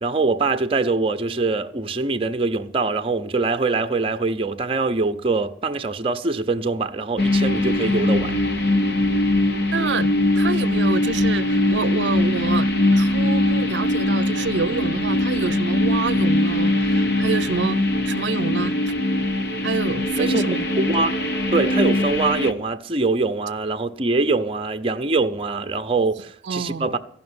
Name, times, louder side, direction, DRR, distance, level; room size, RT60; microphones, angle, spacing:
voice 1, 0.0-8.3 20.2-21.2 21.5-27.0, right 3 dB, 30° right, 0.7 m, -23 dB
sound 1, 7.2-22.5, left 1 dB, 60° left, 1.0 m, -21 dB
voice 2, 9.7-17.8 18.1-18.7 19.6-20.7 26.4-26.9, right 4 dB, 70° right, 0.6 m, -27 dB
14.5 x 5.9 x 9.6 m
head